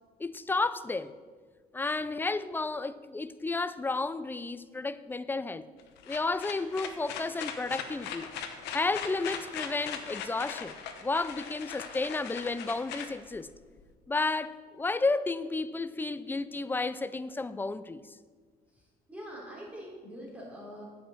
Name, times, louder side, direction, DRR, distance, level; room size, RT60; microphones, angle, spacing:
voice 1, 0.2-1.1 1.7-5.7 6.1-8.3 8.7-10.8 11.0-13.5 14.1-18.1, left 3 dB, 10° left, 0.3 m, -32 dB
sound 1, 5.8-13.8, left 7 dB, 85° left, 1.0 m, -40 dB
voice 2, 18.7-20.8, equal, 10° right, 3.2 m, -44 dB
8.5 x 5.5 x 7.6 m
cardioid pair, 110°, 17 cm